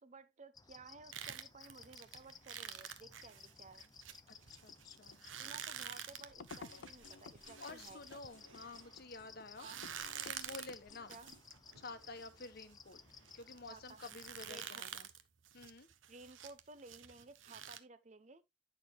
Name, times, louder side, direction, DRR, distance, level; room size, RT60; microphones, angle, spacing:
voice 1, 0.0-3.9 5.4-8.3 9.6-9.8 11.1-11.3 13.7-14.0 14.5-15.0 16.1-18.4, right 3 dB, 35° right, 0.7 m, -56 dB
sound 1, 0.5-14.7, left 6 dB, 20° left, 0.5 m, -58 dB
sound 2, 1.1-9.0 9.5-17.8, right 9 dB, 90° right, 1.0 m, -49 dB
voice 2, 4.3-5.2 7.6-9.7 10.2-11.2 11.8-13.0 13.3-15.1 15.5-15.9, left 3 dB, 55° left, 1.1 m, -51 dB
sound 3, 4.7-11.4, left 4 dB, 75° left, 0.6 m, -56 dB
9.9 x 6.7 x 3.1 m
head